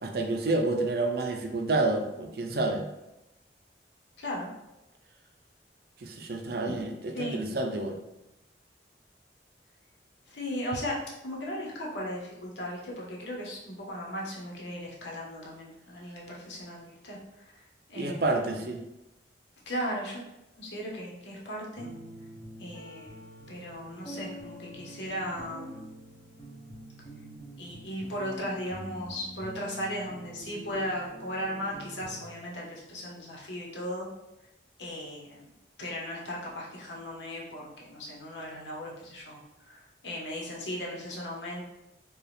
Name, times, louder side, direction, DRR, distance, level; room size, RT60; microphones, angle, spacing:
voice 1, 0.0-2.9 6.0-6.9 7.2-8.0 18.0-18.9, right 2 dB, 60° right, 4 dB, 0.5 m, -29 dB
voice 2, 4.2-4.5 7.1-7.4 10.3-11.0 11.2-18.7 19.7-20.2 20.6-21.9 22.6-26.0 27.5-34.1 34.8-35.4 35.8-41.6, equal, 90° left, -3 dB, 1.1 m, -37 dB
sound 1, 21.8-32.2, equal, 20° left, 0.9 m, -46 dB
4.6 x 2.4 x 3.4 m, 0.94 s
head